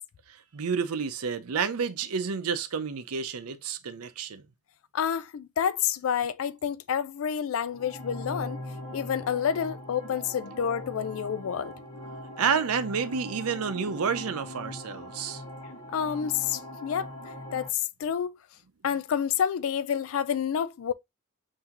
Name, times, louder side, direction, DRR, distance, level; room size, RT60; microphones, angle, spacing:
voice 1, 0.3-4.4 12.4-15.4, right 6 dB, 85° right, 0.6 m, -30 dB
voice 2, 4.9-8.6 8.9-11.7 15.9-18.4 18.8-20.9, left 8 dB, 65° left, 0.3 m, -29 dB
sound 1, 7.7-17.7, left 1 dB, 25° left, 1.0 m, -41 dB
5.7 x 2.7 x 2.9 m
head